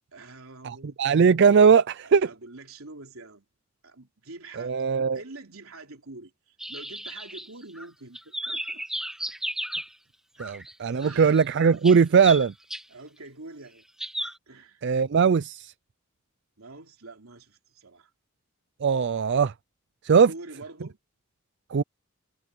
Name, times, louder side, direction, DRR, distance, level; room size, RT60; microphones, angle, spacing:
voice 1, 0.1-1.0 2.0-3.4 3.8-8.8 9.2-9.3 10.3-10.4 11.0-11.4 12.9-13.8 14.5-14.8 16.6-18.1 20.3-21.0, right 2 dB, 85° right, 3.4 m, -45 dB
voice 2, 0.6-2.3 4.6-5.2 10.4-12.5 14.8-15.7 18.8-19.5 20.0-20.3 21.7-21.8, right 6 dB, 55° right, 0.4 m, -20 dB
sound 1, 6.6-7.9 8.1-9.9 10.4-10.7 11.0-12.8 14.0-14.3, right 1 dB, 5° right, 1.9 m, -34 dB
head